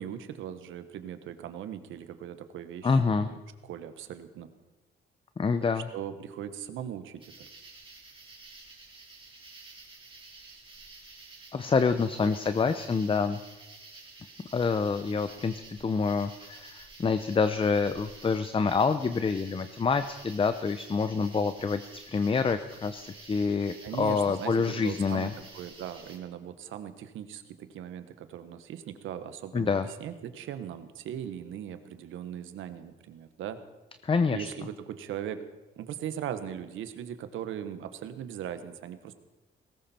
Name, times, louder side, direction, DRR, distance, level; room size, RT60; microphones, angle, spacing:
voice 1, 0.0-4.5 5.7-7.5 23.8-33.6 34.3-35.4 35.8-39.1, right 10 dB, 85° right, 10 dB, 1.4 m, -39 dB
voice 2, 2.8-3.3 5.4-5.8 11.5-13.4 14.5-21.8 22.1-25.3 29.5-29.9 34.0-34.5, left 5 dB, 25° left, 11 dB, 0.8 m, -27 dB
sound 1, 7.2-26.2, right 3 dB, 25° right, 3.8 m, -50 dB
19.0 x 17.0 x 4.4 m, 1.1 s
cardioid pair, 90°, 20 cm